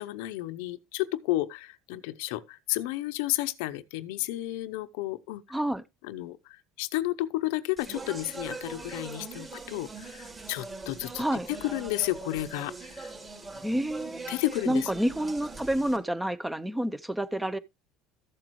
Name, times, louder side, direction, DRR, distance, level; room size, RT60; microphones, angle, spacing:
voice 1, 0.0-5.4 6.0-11.2 11.5-13.1 14.3-14.9, left 17 dB, 85° left, 0.7 m, -32 dB
voice 2, 5.5-5.8 11.2-11.5 13.6-14.4 14.7-17.6, right 1 dB, 5° right, 0.6 m, -29 dB
Speech, 7.8-16.0, right 3 dB, 20° right, 3.1 m, -42 dB
14.0 x 7.7 x 3.1 m
supercardioid pair, 120°, 0 cm